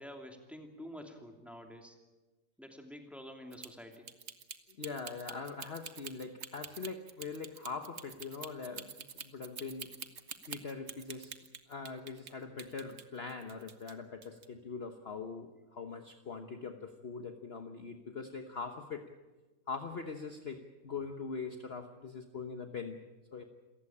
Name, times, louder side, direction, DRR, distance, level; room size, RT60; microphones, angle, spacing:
voice 1, 0.0-2.0 2.6-4.1, equal, ahead, 3 dB, 2.7 m, -48 dB
sound 1, 3.5-12.3 12.6-13.9 14.2-14.4, right 6 dB, 45° right, 1.4 m, -46 dB
voice 2, 4.8-8.9 9.2-9.9 10.5-11.3 11.7-19.1 19.7-23.0 23.3-23.4, left 4 dB, 40° left, 6 dB, 1.3 m, -42 dB
28.0 x 15.5 x 8.7 m, 1.2 s
omnidirectional pair, 1.7 m